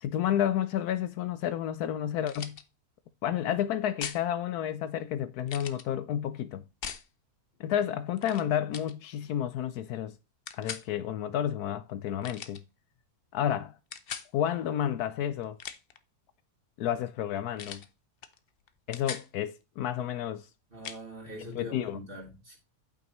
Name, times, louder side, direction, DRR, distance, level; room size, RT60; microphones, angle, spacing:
voice 1, 0.0-2.6 3.2-6.6 7.6-10.1 10.5-12.6 13.3-13.8 14.3-15.6 16.8-17.8 18.9-20.5 21.6-22.0, left 10 dB, 75° left, 1.1 m, -31 dB
sound 1, 2.2-2.6 4.0-4.2 5.5-5.8 6.8-7.1 8.2-8.4 8.7-8.9 10.5-10.9 12.2-12.6 13.9-14.3 15.4-16.0 17.6-17.9 18.2-18.4 18.7-19.3 20.8-21.0, left 7 dB, 50° left, 0.7 m, -40 dB
voice 2, 20.7-22.6, equal, 35° right, 3.8 m, -43 dB
8.8 x 8.2 x 3.1 m
omnidirectional pair, 1.7 m